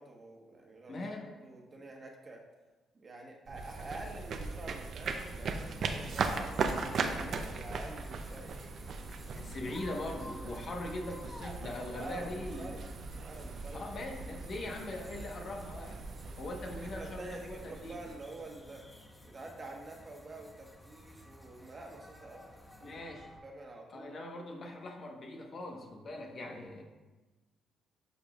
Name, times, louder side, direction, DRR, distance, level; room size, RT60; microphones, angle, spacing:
voice 1, 0.0-1.1 1.4-2.4 2.9-8.5 11.7-12.9 13.2-13.9 16.9-18.9 19.2-22.4 22.9-23.0 23.4-24.2, right 2 dB, 35° right, 0 dB, 1.3 m, -47 dB
voice 2, 0.9-1.3 9.3-12.7 13.7-16.0 16.4-18.0 22.8-23.3 23.9-26.8, left 1 dB, 50° left, 1 dB, 1.2 m, -41 dB
sound 1, 3.5-18.6, right 4 dB, 60° right, 0.6 m, -39 dB
sound 2, 5.1-23.4, left 1 dB, 15° left, 1.0 m, -53 dB
11.5 x 5.1 x 2.4 m, 1.2 s
cardioid pair, 90°, 0 cm